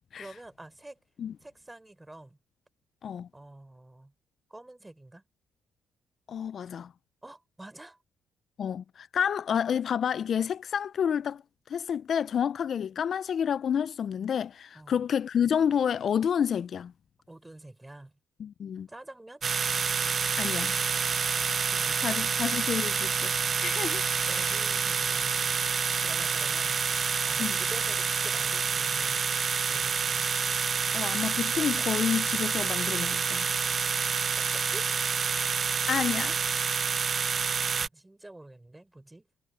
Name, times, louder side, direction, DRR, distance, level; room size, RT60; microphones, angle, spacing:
voice 1, 0.2-1.0 1.4-2.4 3.3-4.1 4.5-5.2 7.2-8.0 14.7-15.0 17.3-18.1 18.9-19.5 21.7-22.1 24.3-25.5 26.0-26.9 27.3-29.3 29.7-30.3 34.4-34.9 37.7-39.3, right 2 dB, 10° right, 5.2 m, -47 dB
voice 2, 6.3-6.9 8.6-16.9 18.4-18.9 20.4-20.8 22.0-24.0 24.4-24.5 27.4-27.6 30.9-33.5 35.9-36.4, left 8 dB, 55° left, 0.3 m, -29 dB
sound 1, 19.4-37.9, right 6 dB, 45° right, 0.5 m, -28 dB
cardioid pair, 90°, 0 cm